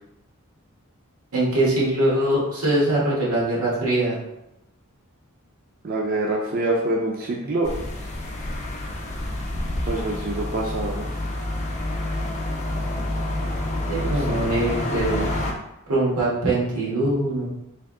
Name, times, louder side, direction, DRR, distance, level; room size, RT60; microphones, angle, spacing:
voice 1, 1.3-4.2 13.9-15.3 15.9-17.4, right 1 dB, 85° right, -6 dB, 1.5 m, -22 dB
voice 2, 5.8-7.7 9.9-11.1 14.0-14.4, right 2 dB, 40° right, -2 dB, 0.4 m, -26 dB
sound 1, 7.6-15.5, left 1 dB, 30° left, 0.5 m, -28 dB
3.4 x 2.7 x 3.7 m, 0.89 s
head